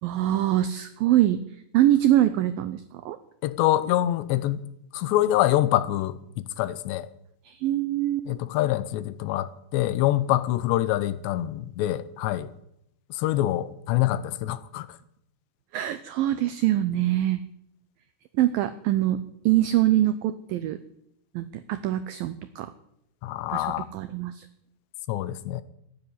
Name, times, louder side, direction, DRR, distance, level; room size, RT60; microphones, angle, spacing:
voice 1, 0.0-1.4 1.7-3.2 7.4-8.2 15.7-17.4 18.3-20.8 21.3-22.7 23.5-24.5, right 13 dB, 85° right, 12 dB, 2.0 m, -24 dB
voice 2, 3.4-4.6 4.9-7.1 8.3-12.5 13.1-14.9 23.2-23.9 25.1-25.6, left 14 dB, 80° left, 15 dB, 3.0 m, -25 dB
14.5 x 10.0 x 9.9 m, 0.77 s
omnidirectional pair, 5.0 m